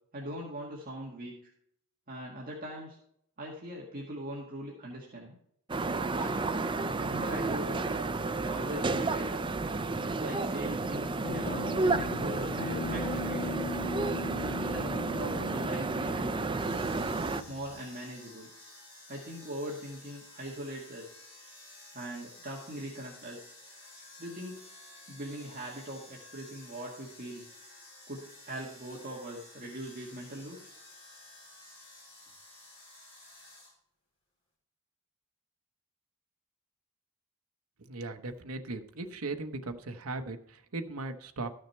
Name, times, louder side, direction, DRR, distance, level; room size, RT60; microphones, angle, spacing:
voice 1, 0.1-1.5 2.1-3.0 3.4-5.4 6.1-6.3 7.0-8.1 8.4-9.4 10.0-13.7 14.3-16.9 17.5-18.5 19.1-21.3 21.9-23.6 24.2-24.6 25.1-27.5 28.1-30.7, right 1 dB, 40° right, -3 dB, 1.8 m, -41 dB
sound 1, 5.7-17.4, right 3 dB, 20° right, 0.4 m, -31 dB
Guitar, 11.2-17.8, left 4 dB, 60° left, 0.4 m, -40 dB
sound 2, 16.5-33.7, left 2 dB, 30° left, 4.9 m, -53 dB
voice 2, 37.8-41.5, right 2 dB, 70° right, 6 dB, 1.0 m, -38 dB
13.5 x 6.5 x 4.4 m, 0.69 s
head